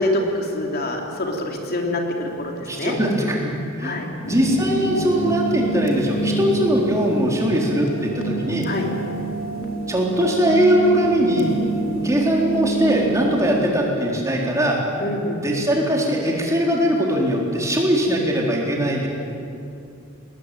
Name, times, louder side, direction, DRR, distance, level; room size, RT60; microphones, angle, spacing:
voice 1, 0.0-3.0 3.8-4.1 8.6-8.9 15.0-15.4, left 1 dB, 45° left, 1 dB, 3.2 m, -25 dB
voice 2, 2.6-8.7 9.9-11.5 12.0-14.8 15.4-19.1, equal, 15° right, -2 dB, 4.0 m, -21 dB
sound 1, 4.2-13.7, right 2 dB, 75° left, 3.4 m, -27 dB
21.5 x 19.5 x 9.2 m, 2.5 s
head